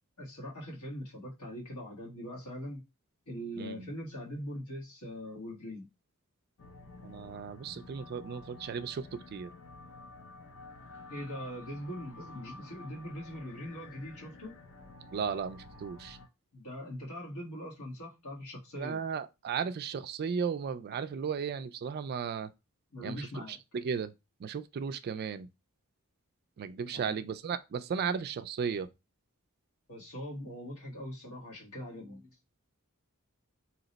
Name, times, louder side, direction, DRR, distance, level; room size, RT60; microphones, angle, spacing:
voice 1, 0.2-2.8 3.3-5.9 11.1-14.5 16.5-19.0 22.9-23.6 26.9-27.1 29.9-32.3, equal, 90° left, 1.3 m, -42 dB
voice 2, 3.6-3.9 7.0-9.5 15.1-16.2 18.8-22.5 23.0-24.1 24.4-25.5 26.6-28.9, right 6 dB, 45° right, 0.3 m, -35 dB
sound 1, 6.6-16.3, left 2 dB, 60° left, 0.6 m, -51 dB
2.8 x 2.0 x 3.9 m
head